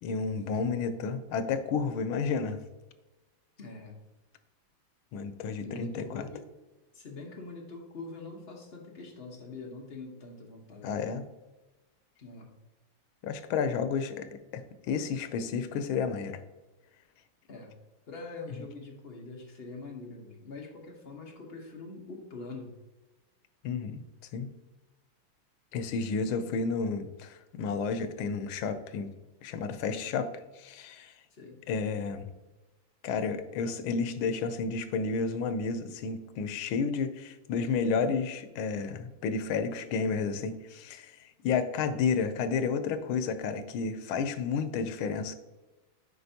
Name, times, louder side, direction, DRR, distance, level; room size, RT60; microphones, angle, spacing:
voice 1, 0.0-2.6 5.1-6.2 10.8-11.2 13.2-14.6 14.9-16.4 23.6-24.0 24.3-24.5 25.7-29.1 29.4-30.3 30.6-31.1 31.7-32.3 33.0-41.2 41.4-45.3, left 5 dB, 90° left, 10 dB, 1.4 m, -31 dB
voice 2, 3.6-3.9 5.6-6.4 6.9-10.9 12.2-12.5 17.5-17.7 18.1-22.7 31.3-31.6, left 3 dB, 40° left, 1 dB, 0.9 m, -44 dB
7.8 x 5.2 x 2.7 m, 1.1 s
omnidirectional pair, 2.2 m